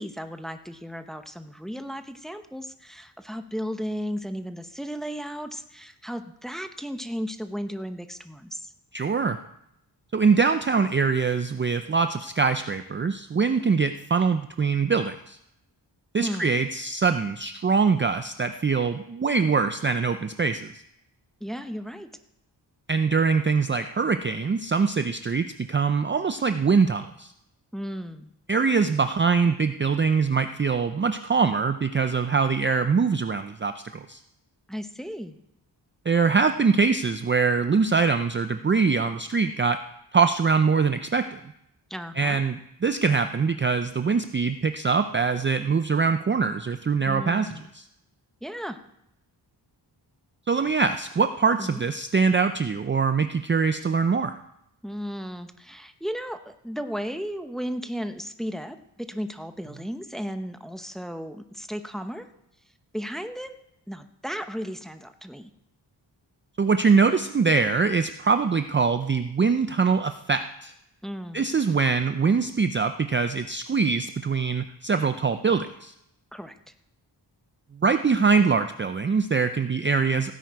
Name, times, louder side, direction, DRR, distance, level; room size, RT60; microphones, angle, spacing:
voice 1, 0.0-8.7 16.2-16.6 21.4-22.1 27.7-28.3 34.7-35.4 41.9-42.4 47.1-47.7 48.4-48.8 51.6-51.8 54.8-62.3 62.9-63.5 63.9-65.5 71.0-71.5 76.3-76.6, equal, ahead, 8 dB, 0.8 m, -35 dB
voice 2, 8.9-9.4 10.1-15.4 16.1-20.8 22.9-27.3 28.5-34.2 36.1-39.8 40.1-41.4 42.2-47.5 50.5-54.4 66.6-70.7 71.3-75.9 77.8-80.3, right 5 dB, 25° right, 9 dB, 0.5 m, -23 dB
16.0 x 9.3 x 4.7 m, 0.80 s
wide cardioid pair, 105°, 43 cm